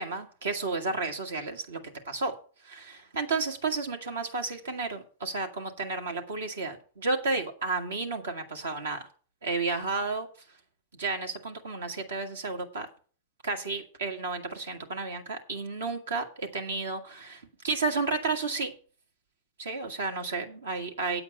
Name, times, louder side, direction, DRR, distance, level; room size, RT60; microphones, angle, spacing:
voice 1, 0.0-2.4 2.6-9.1 9.4-10.3 10.9-12.9 13.4-18.7 19.6-21.2, right 3 dB, 85° right, 3 dB, 1.8 m, -32 dB
8.5 x 7.9 x 5.5 m, 0.41 s
hypercardioid pair, 115°, 0 cm